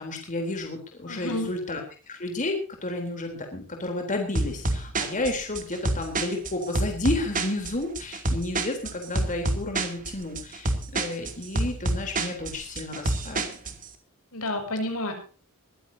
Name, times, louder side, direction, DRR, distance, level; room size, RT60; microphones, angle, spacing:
voice 1, 0.0-1.8 2.1-13.5, left 2 dB, 35° left, 3 dB, 3.7 m, -31 dB
voice 2, 1.1-1.5 14.3-15.1, left 1 dB, 70° left, 5 dB, 6.2 m, -30 dB
sound 1, 4.4-13.9, right 2 dB, 40° right, 2.8 m, -28 dB
22.0 x 15.5 x 2.8 m, 0.38 s
head